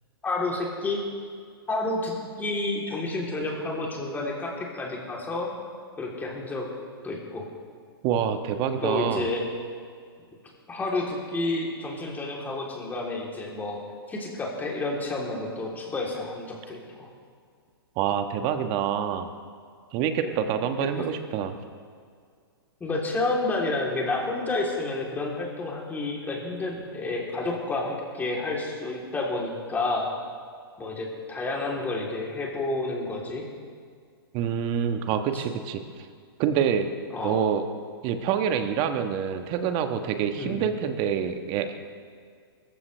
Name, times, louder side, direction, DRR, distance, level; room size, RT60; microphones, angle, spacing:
voice 1, 0.2-1.0 1.7-2.1 2.4-5.5 6.0-6.7 7.0-7.5 8.8-9.5 10.7-13.8 14.1-17.1 20.2-21.1 22.8-30.1 30.8-33.5 35.3-35.4 37.1-37.4 40.3-40.6, left 2 dB, 15° left, -2 dB, 3.5 m, -30 dB
voice 2, 8.0-9.3 18.0-19.3 19.9-21.6 34.3-35.8 36.4-36.9 37.2-37.6 38.0-41.7, right 8 dB, 35° right, 7 dB, 1.4 m, -26 dB
24.0 x 14.5 x 3.4 m, 2.1 s
hypercardioid pair, 120°, 13 cm